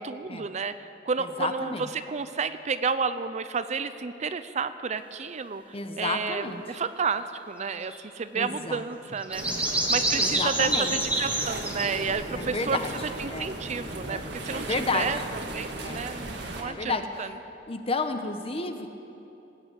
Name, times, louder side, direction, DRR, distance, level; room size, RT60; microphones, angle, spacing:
voice 1, 0.1-1.7 2.1-5.6 6.0-9.4 9.9-12.8 13.2-15.2 15.5-17.3, right 5 dB, 40° right, 12 dB, 0.5 m, -31 dB
voice 2, 1.2-1.9 5.7-6.8 8.3-8.8 9.1-9.2 9.5-9.6 10.2-11.0 12.3-12.9 13.3-13.5 14.0-15.1 15.8-16.0 16.6-17.3 17.7-18.9, left 3 dB, 35° left, 7 dB, 0.9 m, -32 dB
sound 1, 7.9-8.0 9.2-12.1, right 1 dB, 10° right, 1.4 m, -27 dB
sound 2, 9.3-16.6, right 2 dB, 70° right, 1.7 m, -37 dB
19.0 x 8.9 x 8.1 m, 2.9 s
head